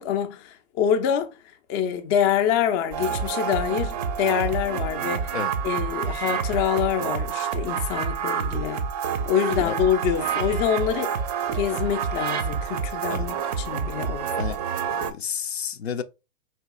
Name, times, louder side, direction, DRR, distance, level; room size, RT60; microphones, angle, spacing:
voice 1, 0.0-1.4 1.7-5.4 5.6-8.8 9.3-11.1 11.5-14.3, left 9 dB, 25° left, 0.3 m, -25 dB
sound 1, 2.9-15.1, right 7 dB, 40° right, 0.4 m, -28 dB
voice 2, 14.9-16.0, left 7 dB, 85° left, 0.5 m, -31 dB
4.2 x 2.8 x 2.2 m
figure-of-eight pair, 110°, 31 cm